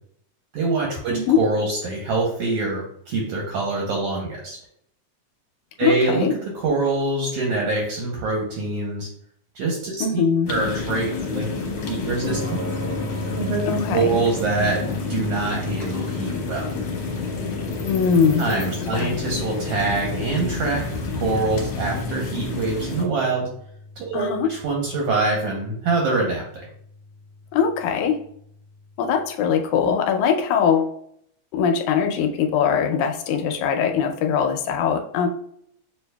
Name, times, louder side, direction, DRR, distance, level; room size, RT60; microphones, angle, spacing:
voice 1, 0.5-4.6 5.8-6.3 6.6-9.1 9.5-10.2 10.5-11.5 11.9-12.6 13.4-13.6 13.9-16.7 18.4-23.5 24.0-26.7, right 3 dB, 75° right, -1 dB, 1.5 m, -25 dB
voice 2, 5.8-6.3 10.0-10.5 13.7-14.2 17.9-18.5 18.9-19.1 24.1-24.5 27.5-28.2 29.0-31.0 31.5-35.3, left 7 dB, 80° left, 4 dB, 1.9 m, -21 dB
sound 1, 10.5-23.1, left 4 dB, 65° left, 1.8 m, -29 dB
sound 2, 12.2-28.8, left 1 dB, 45° left, 1.9 m, -37 dB
6.8 x 2.6 x 2.2 m, 0.66 s
omnidirectional pair, 3.5 m